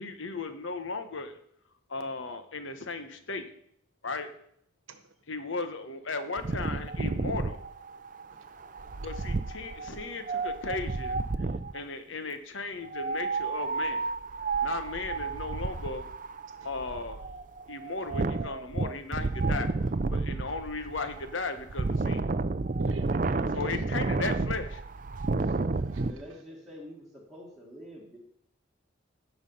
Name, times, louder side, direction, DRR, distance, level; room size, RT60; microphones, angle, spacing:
voice 1, 0.0-1.4 1.9-3.5 4.0-4.3 5.3-7.6 9.0-11.2 11.7-14.1 14.6-16.0 16.6-17.2 17.7-19.7 20.1-22.2 23.5-24.8, left 3 dB, 75° left, 1.2 m, -36 dB
Wind, 6.4-11.8 12.8-26.1, right 3 dB, 40° right, 0.5 m, -31 dB
voice 2, 22.8-23.6 25.4-26.2, right 2 dB, 85° right, 1.2 m, -49 dB
voice 3, 26.0-28.2, equal, ahead, 1.7 m, -46 dB
16.0 x 5.9 x 5.5 m
head